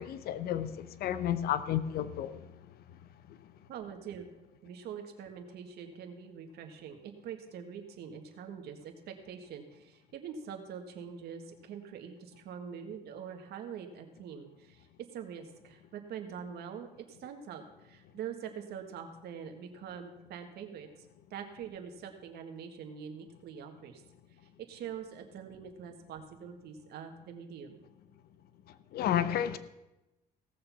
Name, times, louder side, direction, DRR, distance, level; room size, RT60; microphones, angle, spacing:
voice 1, 0.0-2.4 3.3-3.4 28.9-29.6, left 10 dB, 65° left, 0.8 m, -31 dB
voice 2, 3.7-4.3 4.6-20.9 21.3-24.0 24.6-27.8, right 7 dB, 70° right, 1.7 m, -44 dB
17.5 x 6.8 x 5.8 m
cardioid pair, 110°, 17 cm